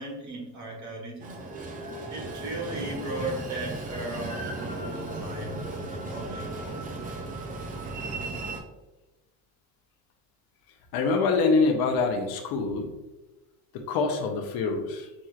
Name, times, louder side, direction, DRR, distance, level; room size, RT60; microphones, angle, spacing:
voice 1, 0.0-1.4 2.1-6.8, right 1 dB, 40° right, -1 dB, 1.5 m, -37 dB
Train, 1.2-8.6, right 2 dB, 20° right, 0.4 m, -35 dB
voice 2, 10.9-12.9 13.7-15.1, left 4 dB, 55° left, 4 dB, 0.8 m, -25 dB
6.0 x 3.0 x 2.4 m, 1.1 s
cardioid pair, 140°, 43 cm